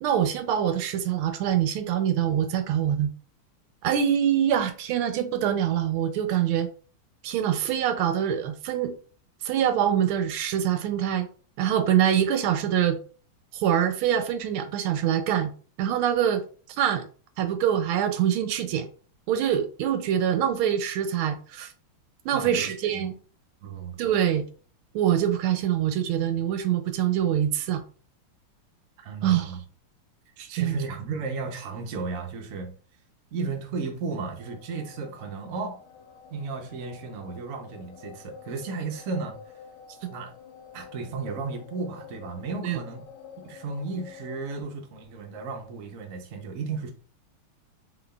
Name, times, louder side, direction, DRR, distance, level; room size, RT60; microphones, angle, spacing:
voice 1, 0.0-3.1 3.8-6.7 7.2-8.9 9.4-11.3 11.6-13.0 13.5-15.5 15.8-16.4 16.8-17.0 17.4-18.9 19.3-21.7 22.2-23.1 24.0-24.4 24.9-27.8 29.2-29.6 30.4-30.8 42.6-42.8, right 10 dB, 80° right, 1.4 m, -24 dB
voice 2, 22.3-22.6 22.9-23.1 23.6-24.1 29.0-29.6 30.5-32.7 33.3-35.8 36.3-39.4 40.1-40.3 40.7-43.1 43.4-46.9, right 4 dB, 65° right, 0.8 m, -34 dB
sound 1, 34.4-44.6, left 7 dB, 75° left, 1.3 m, -48 dB
3.8 x 3.7 x 2.3 m
omnidirectional pair, 2.4 m